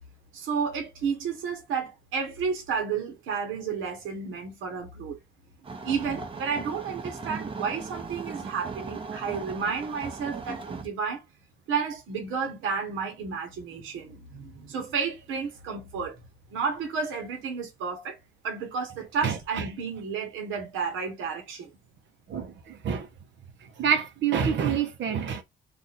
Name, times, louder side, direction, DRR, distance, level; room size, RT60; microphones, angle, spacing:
voice 1, 0.3-5.2 5.8-11.2 11.7-16.2 16.5-18.2 18.4-21.7, right 5 dB, 90° right, 1.1 m, -31 dB
sound 1, 5.6-10.9, right 4 dB, 25° right, 0.7 m, -38 dB
voice 2, 19.2-19.6 22.3-23.1 23.8-25.4, right 7 dB, 70° right, 0.8 m, -27 dB
2.6 x 2.6 x 4.0 m
cardioid pair, 90°, 20 cm